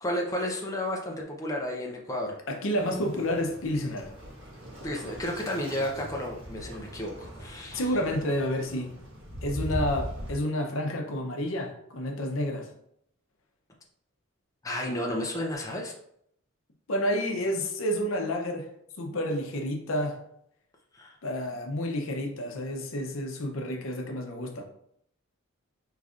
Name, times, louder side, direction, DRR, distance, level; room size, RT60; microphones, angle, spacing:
voice 1, 0.0-2.4 4.8-7.9 14.6-15.9 20.9-21.2, left 1 dB, 15° left, -1 dB, 0.5 m, -32 dB
voice 2, 2.5-4.1 7.7-8.9 9.4-12.7 16.9-18.7 19.0-20.2 21.2-24.6, left 1 dB, 70° left, 3 dB, 0.7 m, -30 dB
Waves surf, 2.7-10.3, equal, 60° right, 1.4 m, -40 dB
4.9 x 3.1 x 2.4 m, 0.71 s
head